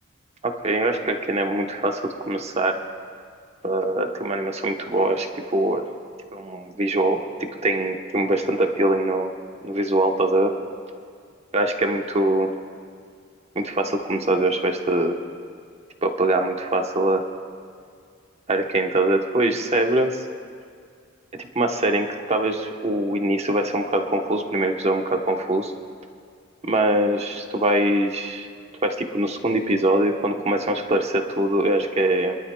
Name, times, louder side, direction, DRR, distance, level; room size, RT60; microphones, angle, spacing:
voice 1, 0.4-2.8 3.6-5.8 6.3-9.3 9.6-10.5 11.5-12.5 13.5-15.2 16.0-17.2 18.5-20.2 21.4-25.7 26.6-28.5 28.8-32.4, right 1 dB, 35° right, 4 dB, 0.9 m, -23 dB
27.5 x 12.0 x 2.2 m, 2.2 s
head